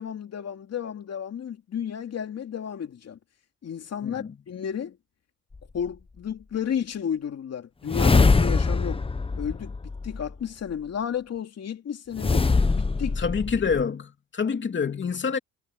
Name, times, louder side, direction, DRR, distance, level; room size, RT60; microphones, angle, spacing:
voice 1, 0.0-3.2 3.6-5.0 5.7-9.0 9.4-9.7 10.0-12.5 12.7-13.2, left 8 dB, 55° left, 2.9 m, -32 dB
voice 2, 4.0-4.3 13.2-15.4, left 6 dB, 40° left, 2.8 m, -27 dB
sound 1, 5.5-5.6 7.9-10.3 12.2-13.8, left 4 dB, 20° left, 1.0 m, -23 dB
cardioid pair, 90°, 30 cm